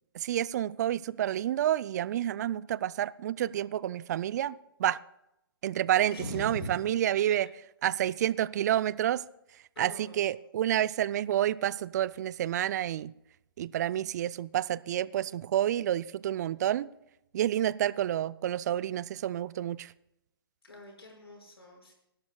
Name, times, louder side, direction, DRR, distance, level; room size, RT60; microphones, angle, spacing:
voice 1, 0.1-4.5 4.8-5.0 5.6-7.5 7.8-9.2 9.8-13.1 13.6-16.9 17.3-19.9, right 11 dB, 45° right, 19 dB, 0.4 m, -29 dB
voice 2, 6.1-6.8 9.8-10.3 20.6-21.9, equal, 80° left, 1 dB, 5.8 m, -41 dB
24.0 x 12.0 x 2.3 m, 0.84 s
figure-of-eight pair, 125°, 13 cm